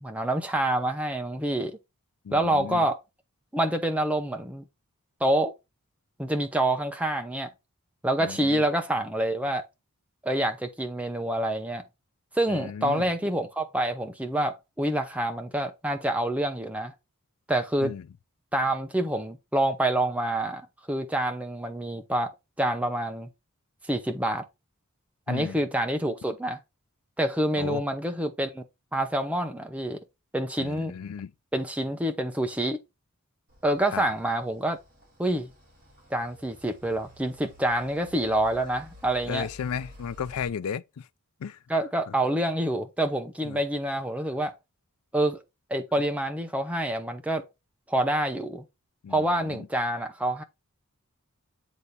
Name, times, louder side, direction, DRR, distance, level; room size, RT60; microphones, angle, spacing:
voice 1, 0.0-1.8 2.3-3.0 3.5-4.6 5.2-5.5 6.2-7.5 8.0-9.6 10.2-11.8 12.3-16.9 17.5-17.9 18.5-22.3 22.6-23.3 23.9-24.4 25.3-26.6 27.2-28.6 28.9-30.0 30.3-30.9 31.5-32.8 33.6-34.8 35.2-35.5 36.1-39.5 41.7-44.5 45.1-45.4 45.7-47.4 47.9-48.6 49.1-50.4, right 1 dB, 5° right, 0.7 m, -27 dB
voice 2, 2.2-2.9 8.2-8.7 12.5-13.1 17.8-18.1 25.3-25.6 27.6-27.8 30.6-31.3 33.9-34.1 39.2-41.1 41.4-41.6 42.1-42.2 43.4-43.6 49.0-49.7, left 7 dB, 80° left, 0.4 m, -35 dB
sound 1, 33.5-40.5, left 1 dB, 40° right, 3.8 m, -52 dB
8.1 x 3.5 x 4.1 m
head